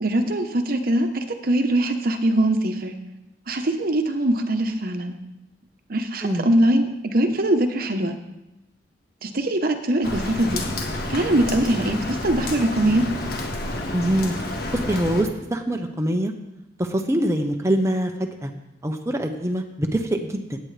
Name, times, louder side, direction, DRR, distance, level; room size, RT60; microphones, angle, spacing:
voice 1, 0.0-2.9 3.5-5.2 5.9-8.2 9.2-10.6 11.1-13.1, right 1 dB, 55° right, 6 dB, 1.0 m, -22 dB
Rain, 10.0-15.2, left 1 dB, 60° left, 1.6 m, -29 dB
voice 2, 13.9-14.3 14.7-16.3 16.8-18.5 18.8-20.6, right 1 dB, 15° right, 3 dB, 0.8 m, -24 dB
16.5 x 9.1 x 3.3 m, 0.96 s
head